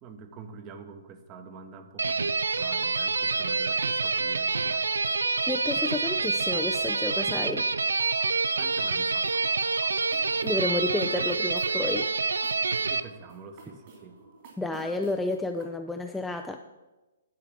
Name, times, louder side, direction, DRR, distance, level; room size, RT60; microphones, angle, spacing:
voice 1, 0.0-4.9 8.6-9.6 12.8-14.2, right 5 dB, 25° right, 7 dB, 1.0 m, -46 dB
sound 1, 2.0-13.0, right 4 dB, 70° right, 0.4 m, -27 dB
voice 2, 5.5-7.7 10.4-12.1 14.6-16.6, left 2 dB, 5° left, 4 dB, 0.4 m, -30 dB
sound 2, 9.1-15.6, right 3 dB, 40° right, 2.9 m, -52 dB
10.5 x 4.8 x 7.2 m, 1.1 s
figure-of-eight pair, 125°, 0 cm